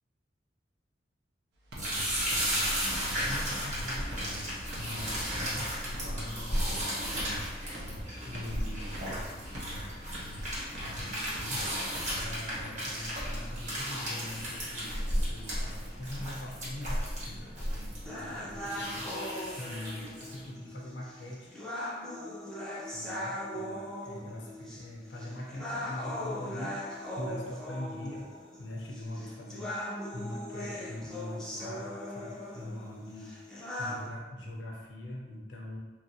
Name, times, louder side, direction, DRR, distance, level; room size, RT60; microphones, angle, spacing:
sound 1, 1.7-20.5, equal, 40° right, 1.0 m, -34 dB
sound 2, 1.7-2.0 2.3-2.6 2.9-3.2 3.5-3.8 4.1-4.4 4.7-5.0 5.3-5.6 5.9-6.2 6.5-6.8 7.1-7.4 7.7-8.0 8.3-8.6 8.9-9.2 9.5-9.8 10.1-10.4 10.7-11.0 11.3-11.6 11.9-12.2 12.5-12.7, equal, 65° right, 0.6 m, -44 dB
voice 1, 3.2-4.3 4.8-7.5 8.3-9.0 10.8-17.0 17.3-21.5 22.9-28.3 28.6-35.8, left 1 dB, 85° left, -2 dB, 0.6 m, -43 dB
sound 3, 18.1-34.1, left 1 dB, 5° left, 0.5 m, -39 dB
3.0 x 2.4 x 2.7 m, 1.2 s
head